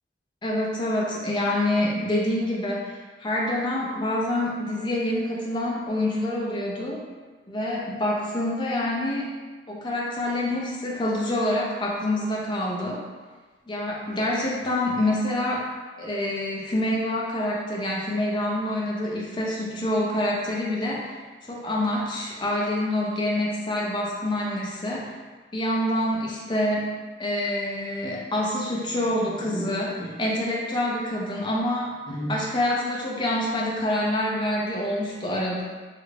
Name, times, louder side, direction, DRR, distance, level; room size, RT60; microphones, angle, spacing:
voice 1, 0.4-7.0 7.5-9.3 9.7-13.0 13.7-15.7 16.0-21.1 21.5-25.1 25.5-26.9 27.2-35.6, left 1 dB, 25° left, -3 dB, 0.5 m, -26 dB
3.2 x 2.4 x 3.2 m, 1.4 s
head